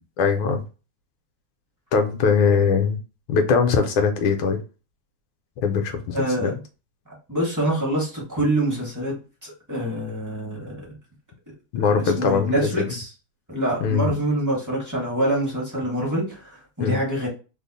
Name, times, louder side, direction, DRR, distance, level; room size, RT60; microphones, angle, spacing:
voice 1, 0.2-0.6 1.9-3.0 3.3-4.6 5.6-6.6 11.7-12.7 13.8-14.2 16.8-17.0, left 5 dB, 75° left, 5 dB, 1.4 m, -21 dB
voice 2, 6.1-6.6 7.3-9.2 9.4-10.9 11.8-13.1 13.5-17.3, right 1 dB, 20° right, -4 dB, 0.5 m, -25 dB
3.5 x 2.0 x 3.9 m, 0.33 s
omnidirectional pair, 2.4 m